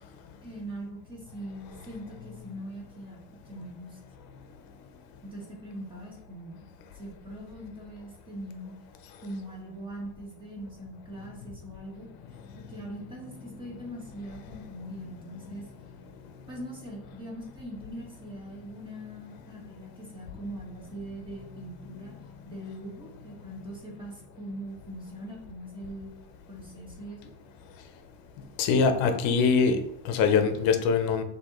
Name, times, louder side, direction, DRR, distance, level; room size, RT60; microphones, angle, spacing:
voice 1, 0.4-4.0 5.2-6.7 6.9-8.7 9.2-12.1 12.5-15.6 16.5-22.1 22.4-26.1 26.5-27.3, right 1 dB, 10° right, -3 dB, 1.1 m, -41 dB
voice 2, 28.6-31.2, left 5 dB, 55° left, 8 dB, 0.7 m, -23 dB
6.2 x 2.8 x 3.0 m, 0.81 s
cardioid pair, 160°, 43 cm